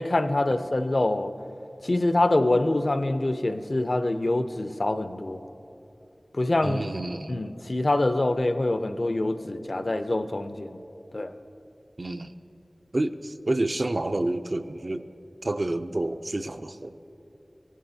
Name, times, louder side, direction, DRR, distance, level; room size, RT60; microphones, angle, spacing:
voice 1, 0.0-1.3 1.8-5.4 6.3-6.8 7.3-10.8 11.1-11.3, left 2 dB, 55° left, 9 dB, 0.5 m, -25 dB
voice 2, 6.6-7.4 12.0-12.3 12.9-15.0 15.4-17.0, right 2 dB, 55° right, 9 dB, 0.4 m, -29 dB
17.5 x 11.0 x 2.7 m, 2.8 s
wide cardioid pair, 55°, 0 cm